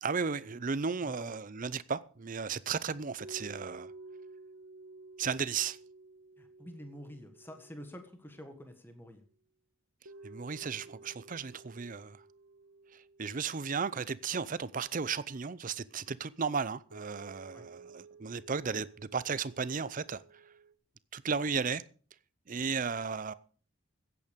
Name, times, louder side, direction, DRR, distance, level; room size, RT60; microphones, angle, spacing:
voice 1, 0.0-3.9 5.2-5.8 10.2-12.2 12.9-20.4 21.1-21.8 22.5-23.3, right 5 dB, 40° right, 0.6 m, -35 dB
sound 1, 3.2-8.6 10.0-15.5 16.9-20.7, right 3 dB, 80° right, 1.2 m, -53 dB
voice 2, 6.4-9.2 17.5-17.7, equal, 10° left, 1.5 m, -48 dB
15.5 x 8.6 x 5.2 m
head